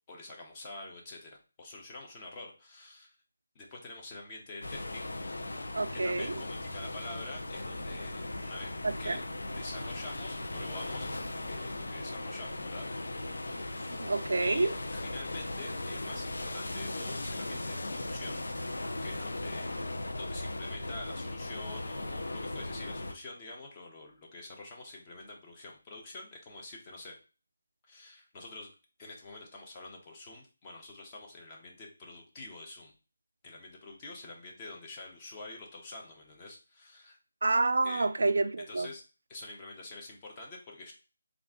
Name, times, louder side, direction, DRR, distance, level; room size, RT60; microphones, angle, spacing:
voice 1, 0.1-3.2 3.5-5.1 6.0-8.7 9.0-9.2 9.5-12.9 13.6-14.1 14.4-18.4 19.0-19.7 20.2-27.2 27.9-28.7 29.0-32.9 33.4-37.2 37.8-38.1 38.7-39.0 39.3-40.9, left 2 dB, 20° left, 0.7 m, -46 dB
sound 1, 4.6-23.1, left 2 dB, 80° left, 0.6 m, -38 dB
voice 2, 5.7-6.4 8.8-9.2 14.0-14.7 37.4-38.9, right 3 dB, 75° right, 0.4 m, -28 dB
3.7 x 2.4 x 3.6 m
figure-of-eight pair, 175°, 0 cm